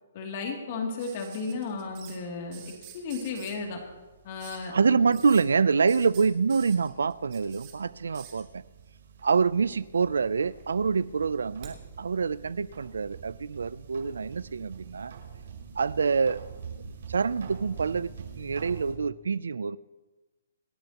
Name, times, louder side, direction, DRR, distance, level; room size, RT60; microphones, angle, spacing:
voice 1, 0.1-2.6 2.9-3.8 4.2-5.1, left 4 dB, 35° left, 1 dB, 2.7 m, -34 dB
sound 1, 1.0-2.2 2.5-3.6 4.4-4.7 5.1-5.4 5.9-7.7 8.1-8.4 9.5-10.1 10.4-11.8 13.1-13.2, right 10 dB, 25° right, 2.2 m, -48 dB
sound 2, 1.6-18.9, right 6 dB, 65° right, 5.3 m, -47 dB
voice 2, 4.7-8.6 9.2-15.1 15.8-16.4 17.1-19.8, right 5 dB, 90° right, 19 dB, 0.5 m, -26 dB
27.0 x 11.0 x 3.0 m, 1.2 s
hypercardioid pair, 170°, 0 cm